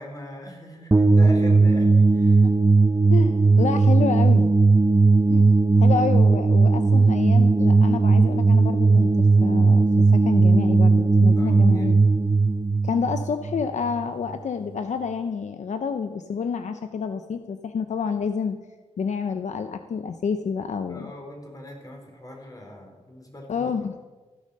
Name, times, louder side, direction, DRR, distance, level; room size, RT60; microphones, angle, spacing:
voice 1, 0.0-2.5 11.4-11.9 20.9-23.8, left 1 dB, 30° left, 1 dB, 4.6 m, -41 dB
sound 1, 0.9-14.0, right 3 dB, 20° right, 0.8 m, -17 dB
voice 2, 3.1-4.5 5.3-12.0 12.8-18.6 19.0-21.1 23.5-23.9, left 6 dB, 75° left, 9 dB, 0.8 m, -28 dB
15.5 x 11.5 x 6.6 m, 1.3 s
wide cardioid pair, 90°, 12 cm